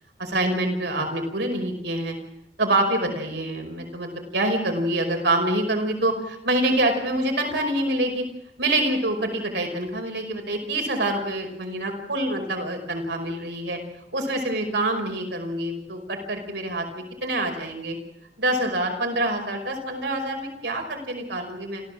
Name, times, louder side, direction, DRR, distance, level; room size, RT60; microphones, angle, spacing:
voice 1, 0.2-2.2 2.6-8.2 8.6-13.8 14.1-18.0 18.4-21.8, right 1 dB, 70° right, 3 dB, 5.3 m, -26 dB
27.5 x 15.5 x 7.6 m, 0.83 s
head